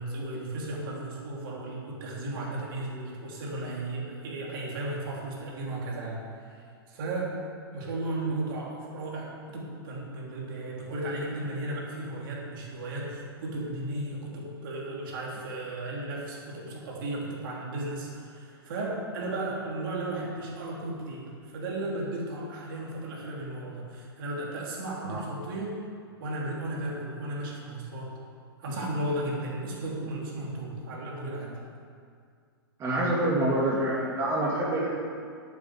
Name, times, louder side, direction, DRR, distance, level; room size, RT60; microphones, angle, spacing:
voice 1, 0.0-7.4 7.7-25.7 26.2-28.2 28.6-31.6, right 2 dB, 55° right, -3 dB, 3.5 m, -35 dB
voice 2, 32.8-34.9, right 1 dB, 25° right, -5 dB, 2.2 m, -26 dB
8.4 x 8.0 x 8.1 m, 2.2 s
hypercardioid pair, 120°, 13 cm